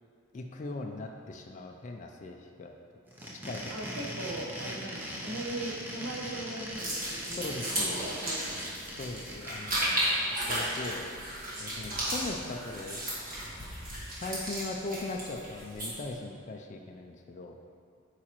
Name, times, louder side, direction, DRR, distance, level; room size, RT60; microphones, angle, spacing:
voice 1, 0.3-2.7 3.4-3.7 7.4-8.0 9.0-11.1 11.6-13.0 14.1-17.6, left 2 dB, 35° left, 2 dB, 0.3 m, -39 dB
sound 1, 3.1-9.8, equal, 10° right, 0.6 m, -40 dB
voice 2, 3.7-7.4 7.7-8.6, right 1 dB, 80° right, -2 dB, 1.0 m, -39 dB
sound 2, 6.7-16.1, right 1 dB, 40° right, 1.6 m, -34 dB
8.5 x 4.9 x 3.0 m, 2.3 s
head